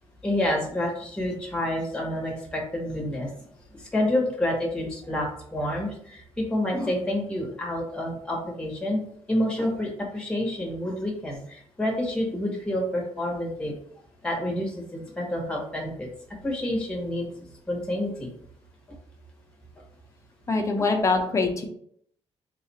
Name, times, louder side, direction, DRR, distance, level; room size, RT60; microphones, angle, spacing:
voice 1, 0.2-3.3 3.7-9.0 9.3-13.7 14.2-16.1 16.4-17.3 17.7-18.3, left 1 dB, 10° left, -1 dB, 1.1 m, -28 dB
voice 2, 20.5-21.7, left 3 dB, 25° left, 3 dB, 0.7 m, -23 dB
3.7 x 2.4 x 4.1 m, 0.66 s
cardioid pair, 130°, 11 cm